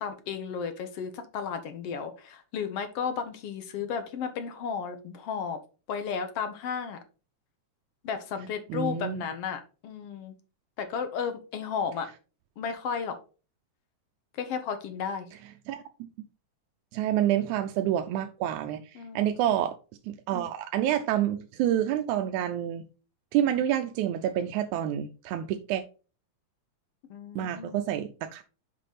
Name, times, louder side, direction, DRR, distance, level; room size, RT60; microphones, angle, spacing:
voice 1, 0.0-5.6 5.9-7.0 8.0-10.4 10.8-12.1 12.6-13.2 14.4-15.3 19.0-19.4 27.1-27.9, left 6 dB, 65° left, 1.9 m, -33 dB
voice 2, 8.7-9.2 15.7-16.1 16.9-19.8 20.1-22.8 23.3-25.8 27.4-28.4, right 11 dB, 85° right, 2.1 m, -28 dB
6.6 x 5.9 x 4.1 m
omnidirectional pair, 3.3 m